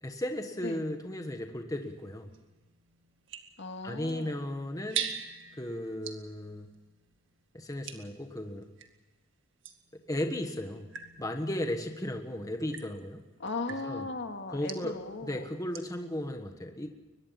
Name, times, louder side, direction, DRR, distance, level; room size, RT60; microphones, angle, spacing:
voice 1, 0.0-2.3 3.8-5.1 5.6-6.7 7.5-8.7 10.1-10.9 11.2-13.2 13.8-14.0 14.5-14.9 15.3-16.9, left 1 dB, 15° left, 5 dB, 1.4 m, -35 dB
sound 1, 1.7-9.0 9.6-16.1, right 8 dB, 65° right, 2.0 m, -44 dB
voice 2, 3.6-4.4 13.4-15.5, left 3 dB, 60° left, 5 dB, 2.1 m, -37 dB
23.0 x 21.0 x 5.9 m, 1.2 s
head